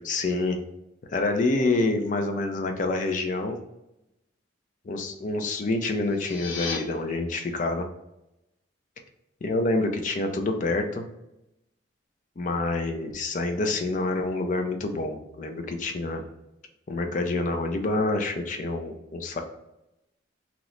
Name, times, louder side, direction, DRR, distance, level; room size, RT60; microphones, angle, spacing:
voice 1, 0.0-0.6 1.1-3.6 4.8-7.9 9.4-11.0 12.4-16.2 16.9-19.4, left 2 dB, 40° left, 5 dB, 0.4 m, -27 dB
sound 1, 6.0-6.8, left 5 dB, 85° left, 0.7 m, -34 dB
3.0 x 2.0 x 3.8 m, 0.87 s
head